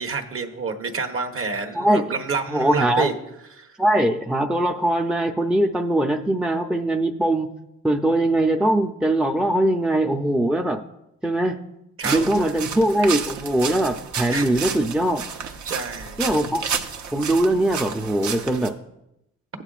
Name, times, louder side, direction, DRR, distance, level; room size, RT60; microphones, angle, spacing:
voice 1, 0.0-3.1 3.6-3.8 12.0-12.6 14.3-14.6 15.6-16.2, right 4 dB, 45° right, 4 dB, 1.3 m, -29 dB
voice 2, 1.8-2.1 2.5-3.1 3.8-7.5 7.8-10.8 11.2-11.6 12.0-15.2 16.2-16.6 17.1-18.7, right 1 dB, 5° right, 3 dB, 0.6 m, -21 dB
sound 1, 12.0-18.7, right 6 dB, 70° right, 1.0 m, -31 dB
15.0 x 8.9 x 2.5 m, 0.86 s
cardioid pair, 90°, 30 cm